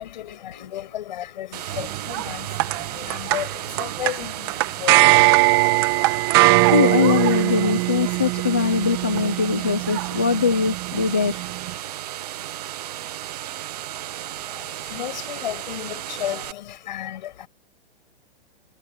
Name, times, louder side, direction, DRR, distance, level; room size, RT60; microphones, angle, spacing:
voice 1, 0.0-6.6 14.0-17.5, left 12 dB, 50° left, 7.9 m, -34 dB
sound 1, 1.5-16.5, right 12 dB, 40° right, 0.8 m, -34 dB
sound 2, 1.7-11.7, right 20 dB, 25° right, 1.2 m, -21 dB
voice 2, 6.7-11.4, left 6 dB, 10° left, 0.3 m, -21 dB
hypercardioid pair, 170°, 30 cm